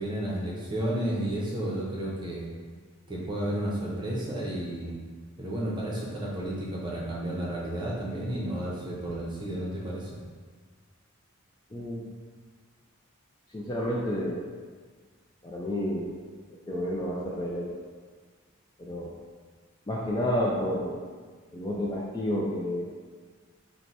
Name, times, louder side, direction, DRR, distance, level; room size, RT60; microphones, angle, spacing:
voice 1, 0.0-2.5 3.1-5.0 5.4-10.2, right 1 dB, 20° right, -4 dB, 0.7 m, -32 dB
voice 2, 11.7-12.1 13.5-14.5 15.4-16.2 16.7-17.8 18.8-19.1 19.9-21.1 21.5-22.9, equal, 20° left, -5 dB, 0.3 m, -30 dB
4.6 x 2.2 x 4.1 m, 1.5 s
head